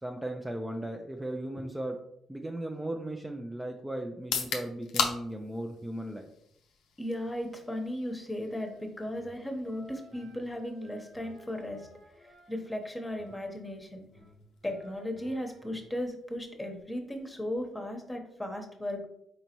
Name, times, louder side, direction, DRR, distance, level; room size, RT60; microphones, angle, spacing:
voice 1, 0.0-2.0 2.3-6.3, right 1 dB, 10° right, 2 dB, 0.5 m, -37 dB
sound 1, 4.1-18.0, left 6 dB, 85° left, 0.6 m, -41 dB
voice 2, 7.0-11.9 12.1-14.1 14.6-19.0, left 1 dB, 15° left, 4 dB, 1.0 m, -36 dB
sound 2, 8.6-13.8 14.1-15.9, equal, 85° right, 1.5 m, -56 dB
4.5 x 3.9 x 3.0 m, 0.74 s
supercardioid pair, 65°, 0 cm